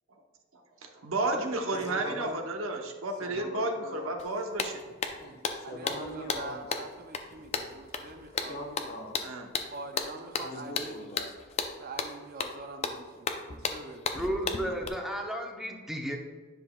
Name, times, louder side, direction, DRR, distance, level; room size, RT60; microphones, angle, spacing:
voice 1, 0.8-4.8 9.2-9.5, right 2 dB, 80° right, 3 dB, 0.9 m, -32 dB
voice 2, 2.0-2.4 3.2-4.1 5.2-6.6 8.5-9.2 10.4-11.3, left 1 dB, 45° left, 1 dB, 1.1 m, -41 dB
sound 1, 4.2-4.3 4.6-14.9, left 5 dB, 30° left, 0.5 m, -34 dB
voice 3, 5.6-8.6 9.7-11.1 11.8-14.1, right 2 dB, 45° right, 6 dB, 0.5 m, -44 dB
voice 4, 14.1-16.2, equal, ahead, 1 dB, 0.7 m, -33 dB
9.7 x 5.9 x 2.3 m, 1.5 s
head